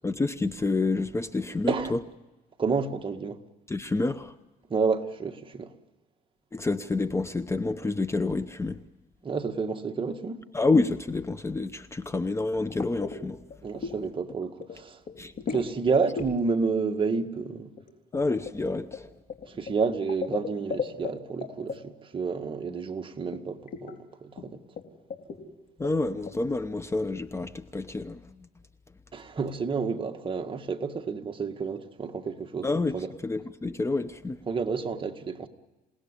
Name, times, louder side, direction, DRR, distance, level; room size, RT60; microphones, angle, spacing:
voice 1, 0.0-2.0 3.7-4.3 6.5-8.8 10.5-13.4 13.8-13.9 15.2-15.3 18.1-19.1 25.8-28.2 32.6-34.4, left 3 dB, 15° left, 0.8 m, -28 dB
voice 2, 2.6-3.4 4.7-5.7 9.2-10.4 13.6-15.0 15.5-17.7 19.5-24.6 29.1-33.1 34.5-35.5, right 5 dB, 30° right, 1.8 m, -30 dB
sound 1, 12.8-13.2 13.5-14.0 14.3-14.8 15.1-15.7 16.1-16.3 17.8-21.1 21.4-21.8 23.3-23.4 23.7-23.9 24.4-24.5 24.8-24.9 25.1-25.4 25.8-26.3, left 5 dB, 50° left, 3.7 m, -35 dB
28.0 x 18.0 x 9.9 m
cardioid pair, 110°, 17 cm